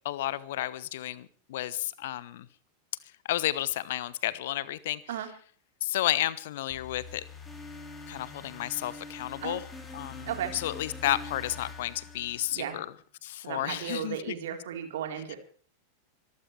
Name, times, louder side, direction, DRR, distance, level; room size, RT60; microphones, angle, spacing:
voice 1, 0.0-2.5 3.3-5.0 5.8-7.2 8.1-9.6 9.9-12.9 13.2-14.2, left 14 dB, 55° left, 19 dB, 1.0 m, -32 dB
sound 1, 6.7-12.9, left 4 dB, 10° left, 4.1 m, -44 dB
voice 2, 10.3-10.6 12.5-12.8 13.4-15.4, right 9 dB, 55° right, 5 dB, 3.8 m, -35 dB
25.5 x 14.0 x 3.3 m, 0.43 s
figure-of-eight pair, 90°, 0 cm